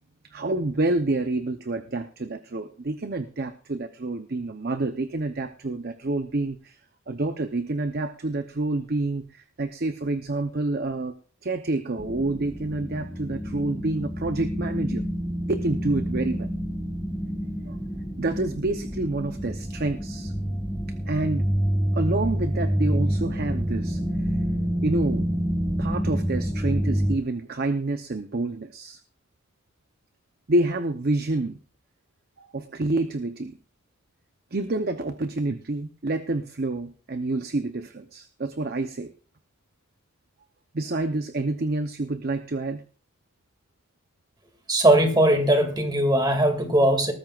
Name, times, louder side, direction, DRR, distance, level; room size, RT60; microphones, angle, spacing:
voice 1, 0.2-6.8 7.1-11.1 11.4-15.0 15.5-16.5 17.7-17.8 18.2-20.3 21.1-21.5 21.9-24.0 24.8-25.3 25.8-29.0 30.5-31.6 32.4-33.5 34.5-39.1 40.7-42.8, right 2 dB, 45° right, 8 dB, 0.7 m, -28 dB
sound 1, 12.0-27.2, equal, ahead, 1.8 m, -28 dB
voice 2, 44.7-47.1, right 1 dB, 20° right, 5 dB, 2.2 m, -20 dB
19.0 x 14.0 x 2.4 m, 0.40 s
head